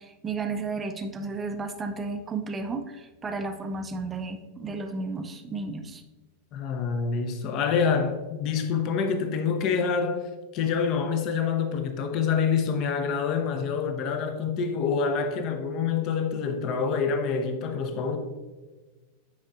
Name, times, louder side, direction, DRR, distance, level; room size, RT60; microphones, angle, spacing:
voice 1, 0.0-6.0, right 3 dB, 20° right, 0.5 m, -33 dB
voice 2, 6.5-18.2, left 6 dB, 40° left, 0.7 m, -26 dB
8.4 x 4.9 x 2.5 m
figure-of-eight pair, 90°, 0 cm